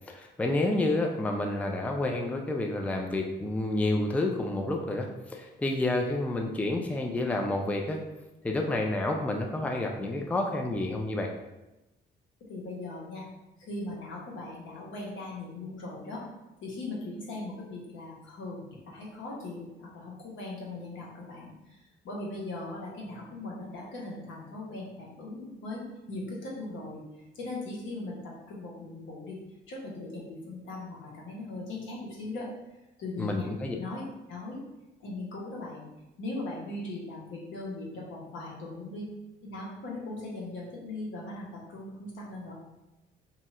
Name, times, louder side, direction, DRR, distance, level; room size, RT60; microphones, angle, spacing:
voice 1, 0.1-8.0 8.4-11.3 33.2-33.7, left 2 dB, 5° left, 2 dB, 0.4 m, -29 dB
voice 2, 12.5-13.3 13.6-16.2 16.6-27.1 27.3-29.4 29.7-32.5 33.0-33.5 33.8-34.0 34.3-34.6 35.0-39.1 39.4-42.5, left 2 dB, 75° left, -4 dB, 1.2 m, -39 dB
2.7 x 2.4 x 4.2 m, 0.99 s
cardioid pair, 90°, 20 cm